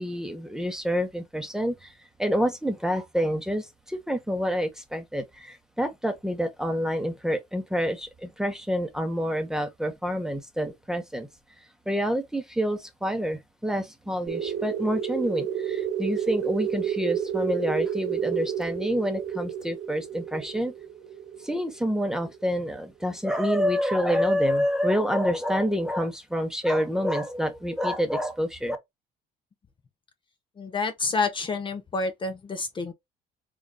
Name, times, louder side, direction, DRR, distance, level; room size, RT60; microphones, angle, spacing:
voice 1, 0.0-1.9 2.2-11.3 11.9-20.7 21.4-28.8, equal, 5° right, 1.0 m, -27 dB
sound 1, 14.3-22.6, right 9 dB, 90° right, 1.9 m, -31 dB
voice 2, 30.6-32.9, left 4 dB, 30° left, 0.8 m, -28 dB
3.9 x 3.8 x 2.2 m
cardioid pair, 110°, 17 cm